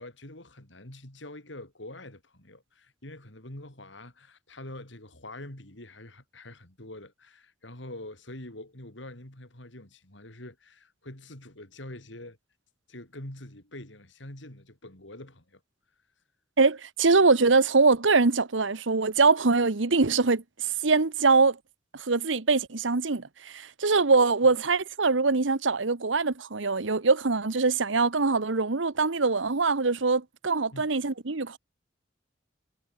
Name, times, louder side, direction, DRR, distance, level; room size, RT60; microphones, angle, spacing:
voice 1, 0.0-12.4 12.9-15.6 30.7-30.9, left 1 dB, 70° left, 4.7 m, -45 dB
voice 2, 16.6-20.4 20.8-21.6 22.0-31.6, right 4 dB, 75° right, 1.1 m, -23 dB
head